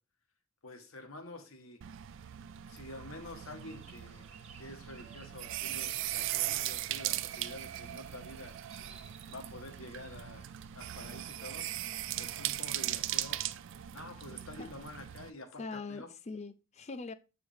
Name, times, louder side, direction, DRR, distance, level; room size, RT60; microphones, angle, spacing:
voice 1, 0.6-1.8 2.7-4.3 4.6-8.6 9.3-11.7 12.2-13.4 13.9-16.1, left 2 dB, 75° left, 1.2 m, -48 dB
sound 1, 1.8-15.3, right 13 dB, 60° right, 0.3 m, -39 dB
sound 2, 3.2-13.6, right 6 dB, 30° right, 0.8 m, -60 dB
voice 2, 15.6-17.1, left 3 dB, 30° left, 0.4 m, -42 dB
7.3 x 4.8 x 3.3 m
head